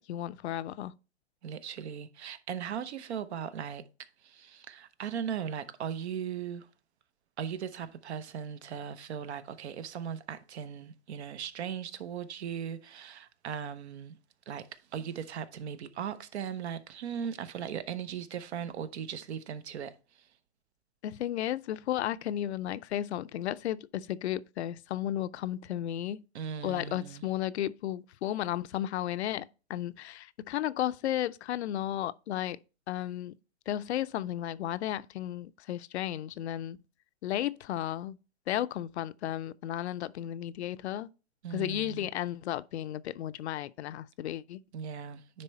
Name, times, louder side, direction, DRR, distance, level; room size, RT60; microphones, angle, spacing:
voice 1, 0.1-0.9 21.0-26.2 26.6-32.6 32.9-33.3 33.7-36.8 37.2-38.2 38.5-41.1 41.5-44.6, left 12 dB, 70° left, 0.5 m, -34 dB
voice 2, 1.4-6.7 7.4-14.2 14.5-20.3 26.3-27.2 41.4-42.1 44.7-45.4, right 8 dB, 70° right, 0.9 m, -38 dB
9.7 x 3.4 x 4.2 m
hypercardioid pair, 135°, 34 cm